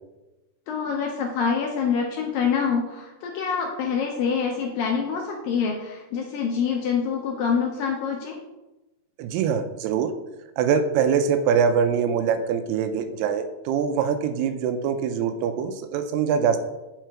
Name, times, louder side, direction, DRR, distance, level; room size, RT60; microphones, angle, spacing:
voice 1, 0.7-8.4, left 6 dB, 80° left, 1 dB, 2.1 m, -26 dB
voice 2, 9.2-10.1 10.6-16.6, right 7 dB, 85° right, 9 dB, 2.6 m, -23 dB
9.2 x 4.9 x 4.5 m, 1.0 s
omnidirectional pair, 4.8 m